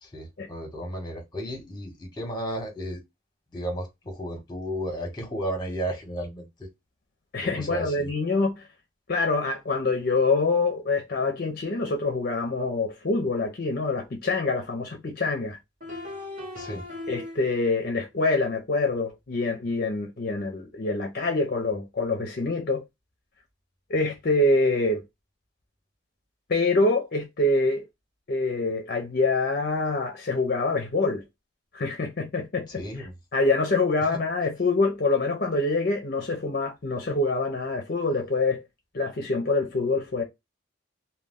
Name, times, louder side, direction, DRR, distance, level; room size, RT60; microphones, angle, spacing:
voice 1, 0.0-3.0 3.5-6.7 7.4-8.1 16.5-16.8 32.8-33.1, equal, 20° left, 0.9 m, -33 dB
voice 2, 7.3-8.6 9.1-15.6 17.1-22.8 23.9-25.0 26.5-27.8 28.3-31.2 31.7-33.1 33.3-38.6 38.9-40.2, left 3 dB, 50° left, 0.5 m, -25 dB
sound 1, 15.8-17.8, left 2 dB, 40° right, 0.9 m, -38 dB
2.2 x 2.2 x 3.4 m
head